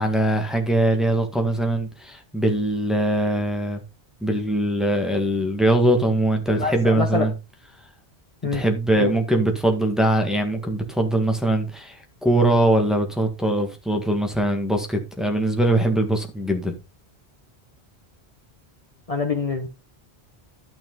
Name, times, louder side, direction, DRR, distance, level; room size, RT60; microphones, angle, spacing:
voice 1, 0.0-3.8 4.2-7.3 8.5-16.8, right 1 dB, ahead, 1.6 m, -22 dB
voice 2, 6.6-7.3 8.4-8.6 9.0-9.1 19.1-19.7, left 4 dB, 35° left, 1.1 m, -25 dB
12.0 x 6.1 x 3.9 m
omnidirectional pair, 1.1 m